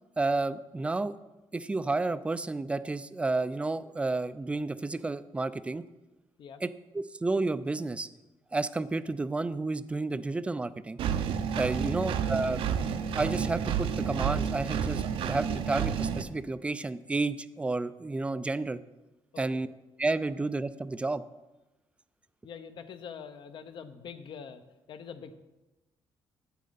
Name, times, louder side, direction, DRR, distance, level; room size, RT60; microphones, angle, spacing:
voice 1, 0.2-1.2 1.5-5.8 6.6-8.1 8.5-11.0 11.6-12.6 13.1-18.8 19.4-19.7 20.0-21.2, right 3 dB, 15° right, 15 dB, 0.3 m, -31 dB
Engine, 11.0-16.2, right 7 dB, 75° right, 0.6 m, -30 dB
voice 2, 22.4-24.6 24.9-25.3, left 7 dB, 60° left, 10 dB, 0.7 m, -44 dB
8.6 x 8.2 x 4.0 m, 1.0 s
cardioid pair, 120°, 9 cm